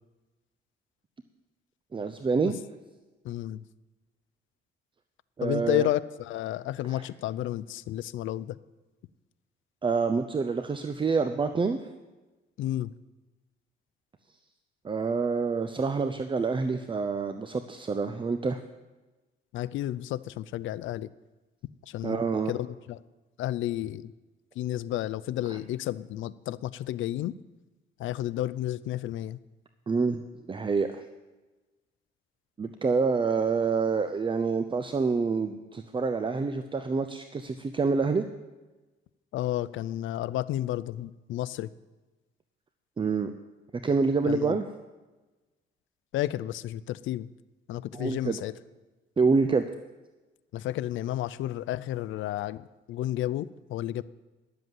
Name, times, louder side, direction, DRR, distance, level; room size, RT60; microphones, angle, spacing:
voice 1, 1.9-2.5 5.4-5.9 6.9-7.1 9.8-11.8 14.8-18.6 22.0-22.5 29.9-30.2 30.5-31.1 32.6-38.2 43.0-43.3 43.8-44.6 47.9-48.4 49.2-49.6, right 4 dB, 25° right, 9 dB, 0.6 m, -27 dB
voice 2, 3.2-3.6 5.4-8.6 12.6-12.9 19.5-21.1 21.9-23.0 23.4-24.1 24.6-27.3 28.0-29.4 39.3-41.7 44.3-44.6 46.1-47.3 47.7-48.5 50.5-54.0, left 13 dB, 75° left, 17 dB, 0.5 m, -31 dB
11.0 x 7.9 x 7.6 m, 1.2 s
cardioid pair, 90°, 20 cm